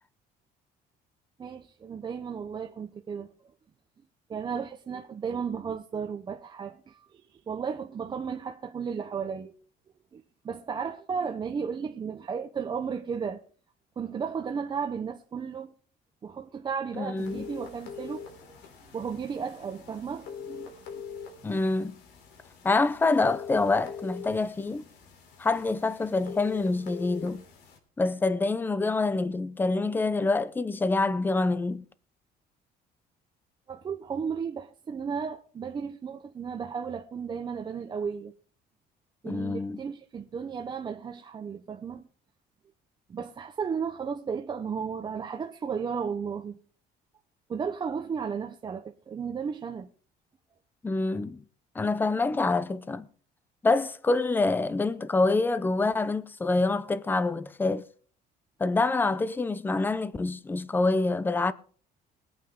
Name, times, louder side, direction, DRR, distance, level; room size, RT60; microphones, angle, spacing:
voice 1, 1.4-3.3 4.3-9.5 10.1-13.4 14.0-15.7 16.2-18.6 18.8-21.0 33.7-38.3 39.2-42.0 43.1-46.6 47.5-49.9, right 6 dB, 25° right, 0.8 m, -34 dB
voice 2, 16.9-17.5 21.4-22.0 22.6-24.8 25.4-27.4 28.0-31.9 39.2-39.8 50.8-51.4 51.7-53.1 53.6-57.9 58.6-61.5, left 3 dB, 10° left, 0.6 m, -26 dB
sound 1, 17.2-27.8, left 6 dB, 90° left, 3.6 m, -44 dB
21.5 x 8.7 x 3.7 m
cardioid pair, 160°, 17 cm